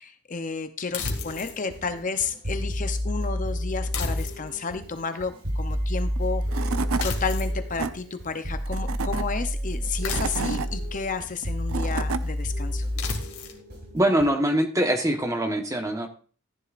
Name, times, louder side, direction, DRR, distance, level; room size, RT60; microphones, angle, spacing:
voice 1, 0.0-6.7 7.0-12.9, left 5 dB, 35° left, 9 dB, 0.7 m, -32 dB
sound 1, 0.9-1.6 3.9-4.7 7.0-7.6 10.0-10.7 13.0-13.6, left 4 dB, 75° left, 2.1 m, -33 dB
sound 2, 1.0-14.3, equal, 50° right, 5.2 m, -30 dB
Tools / Wood, 6.2-6.3 6.5-7.1 7.5-7.9 8.7-9.2 9.9-10.7 11.4-12.2, right 5 dB, 70° right, 0.7 m, -30 dB
voice 2, 13.9-16.1, right 1 dB, 15° right, 5 dB, 1.1 m, -23 dB
14.5 x 10.5 x 2.5 m, 0.40 s
head